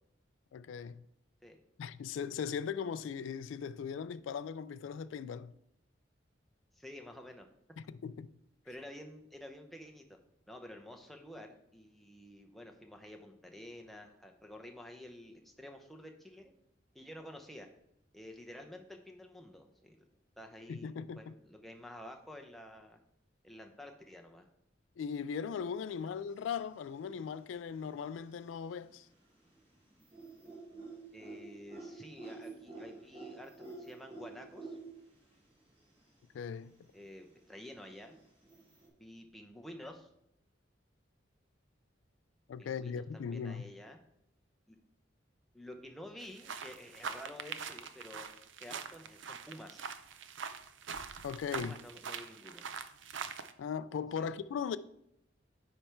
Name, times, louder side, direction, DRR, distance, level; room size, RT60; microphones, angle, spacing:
voice 1, 0.5-1.0 1.8-5.6 7.8-8.3 20.7-21.3 25.0-29.1 36.3-36.7 42.5-43.7 51.2-51.8 53.6-54.8, left 6 dB, 85° left, 0.3 m, -39 dB
voice 2, 6.7-7.5 8.7-10.2 10.5-16.5 16.9-17.7 18.1-20.0 20.4-20.9 21.2-23.0 23.4-24.5 31.1-33.5 33.8-34.8 36.9-38.1 39.0-40.1 42.6-44.0 44.7-44.8 45.5-48.3 48.6-49.9 51.5-52.6 54.2-54.3, left 1 dB, ahead, 0.6 m, -50 dB
sound 1, 26.1-26.6 26.9-29.0 29.3-35.4 35.6-35.7 35.9-36.0 36.6-38.9, right 3 dB, 30° right, 1.6 m, -50 dB
sound 2, 46.2-53.5, right 6 dB, 80° right, 0.5 m, -43 dB
9.7 x 3.4 x 4.4 m
head